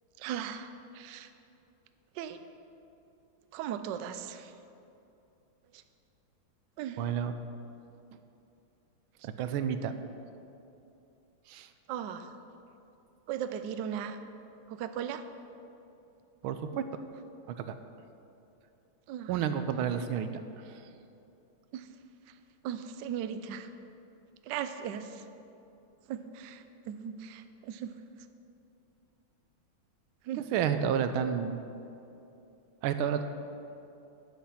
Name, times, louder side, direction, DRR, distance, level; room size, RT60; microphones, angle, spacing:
voice 1, 0.2-0.7 0.9-1.3 2.2-2.4 3.5-4.5 6.8-7.0 11.9-12.3 13.3-14.2 14.7-15.2 19.1-19.3 21.7-21.8 22.6-23.7 24.5-25.2 26.1-27.9 30.3-30.4, right 9 dB, 70° right, 10 dB, 1.1 m, -37 dB
voice 2, 7.0-7.3 9.2-9.9 11.5-11.7 16.4-16.8 17.5-17.7 19.3-20.3 20.7-20.8 30.3-31.6 32.8-33.2, right 8 dB, 90° right, 9 dB, 1.5 m, -30 dB
11.5 x 8.0 x 5.8 m, 2.8 s
omnidirectional pair, 2.2 m